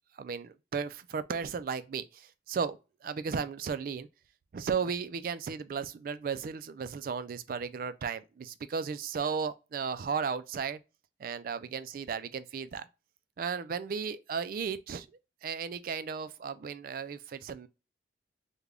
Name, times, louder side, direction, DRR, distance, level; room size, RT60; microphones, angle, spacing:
voice 1, 0.2-4.1 4.5-10.8 11.2-12.9 13.4-15.1 15.4-17.7, right 6 dB, 50° right, 0.3 m, -35 dB
3.3 x 2.2 x 3.6 m
head